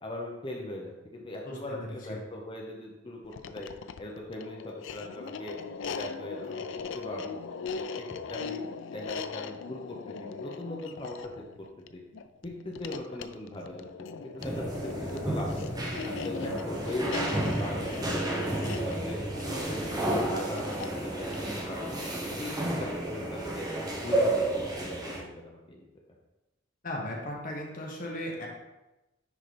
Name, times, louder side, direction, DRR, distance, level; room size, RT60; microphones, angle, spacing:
voice 1, 0.0-3.7 4.0-5.5 5.8-7.3 7.8-8.6 8.9-11.7 11.9-12.0 12.4-13.9 14.2-15.7 16.0-17.2 17.5-19.2 19.5-23.7 24.0-25.8, left 1 dB, 25° left, -1 dB, 0.8 m, -40 dB
voice 2, 1.4-1.8 2.1-2.2 26.8-28.5, left 1 dB, 45° left, -1 dB, 1.3 m, -36 dB
sound 1, 3.2-22.5, left 5 dB, 65° left, 0.4 m, -40 dB
sound 2, 14.4-25.2, right 1 dB, 20° right, 1.0 m, -31 dB
10.0 x 4.0 x 3.4 m, 1.0 s
head